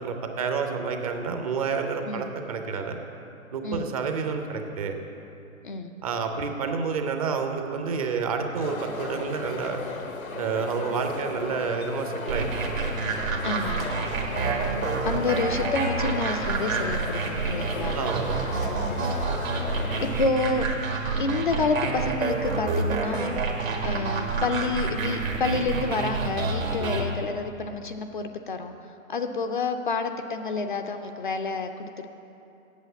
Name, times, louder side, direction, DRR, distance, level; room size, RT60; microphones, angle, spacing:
voice 1, 0.0-3.0 3.5-5.0 6.0-9.8 10.4-12.8 17.9-18.4 26.8-27.1, right 5 dB, 25° right, 5 dB, 0.6 m, -29 dB
sound 1, 8.6-20.2, left 4 dB, 90° left, 1.0 m, -36 dB
sound 2, 12.3-27.0, right 4 dB, 75° right, 1.8 m, -28 dB
voice 2, 13.4-13.9 15.0-18.0 18.6-18.7 20.0-20.7 21.2-23.4 23.8-28.8 29.1-32.1, left 3 dB, 40° left, 6 dB, 0.4 m, -29 dB
8.2 x 7.5 x 8.0 m, 2.8 s
figure-of-eight pair, 130°, 41 cm